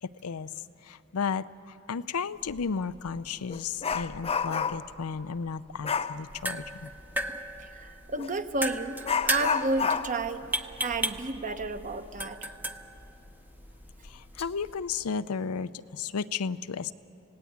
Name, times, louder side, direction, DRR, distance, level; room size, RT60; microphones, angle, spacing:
voice 1, 0.0-6.9 14.0-16.9, left 5 dB, 80° left, 14 dB, 0.5 m, -34 dB
Dog, 2.5-2.6 3.1-5.0 5.8-6.2 8.2-8.3 9.0-12.3 12.6-12.7 13.3-13.4 14.0-14.4 14.8-15.1, left 6 dB, 25° left, 0.5 m, -31 dB
sound 1, 6.2-14.8, right 1 dB, 10° right, 0.7 m, -36 dB
voice 2, 7.6-10.4 10.8-12.5, right 2 dB, 35° right, 8 dB, 1.0 m, -32 dB
26.5 x 17.5 x 9.5 m, 3.0 s
head